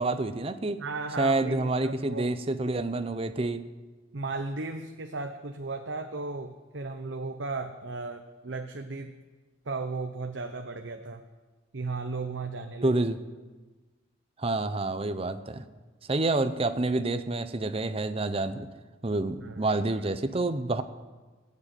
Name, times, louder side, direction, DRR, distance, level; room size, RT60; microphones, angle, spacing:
voice 1, 0.0-0.8 1.2-3.7 12.8-13.2 14.4-15.7 16.1-18.7 19.0-20.8, right 2 dB, 30° right, 10 dB, 0.7 m, -28 dB
voice 2, 0.8-2.3 4.1-9.2 9.6-11.2 11.7-13.0 19.4-19.8, right 3 dB, 70° right, 5 dB, 0.8 m, -35 dB
17.5 x 7.6 x 9.1 m, 1.3 s
head